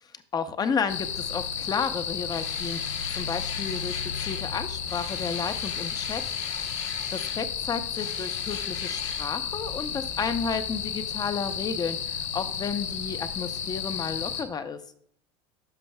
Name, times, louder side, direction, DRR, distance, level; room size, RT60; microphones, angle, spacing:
voice 1, 0.3-6.2 6.6-6.7 7.1-14.8, left 6 dB, 25° left, 10 dB, 0.7 m, -32 dB
sound 1, 0.9-14.4, left 7 dB, 90° left, 0.8 m, -32 dB
sound 2, 2.3-4.5 4.9-7.4 7.9-9.3, left 6 dB, 70° left, 1.6 m, -40 dB
12.5 x 5.4 x 2.2 m, 0.62 s
supercardioid pair, 105°, 16 cm